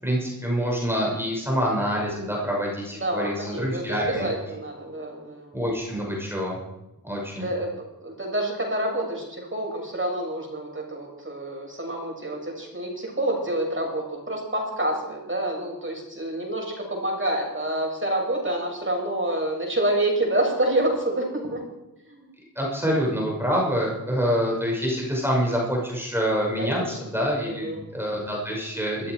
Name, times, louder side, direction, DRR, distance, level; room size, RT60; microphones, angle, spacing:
voice 1, 0.0-4.3 5.5-6.6 7.0-7.5 22.6-29.1, equal, 5° right, -3 dB, 5.9 m, -26 dB
voice 2, 3.0-5.6 7.4-7.7 8.0-21.6 22.1-22.3 26.6-27.0 27.4-27.8, right 1 dB, 35° right, 0 dB, 6.7 m, -28 dB
21.0 x 14.0 x 4.7 m, 0.96 s
wide cardioid pair, 70°, 36 cm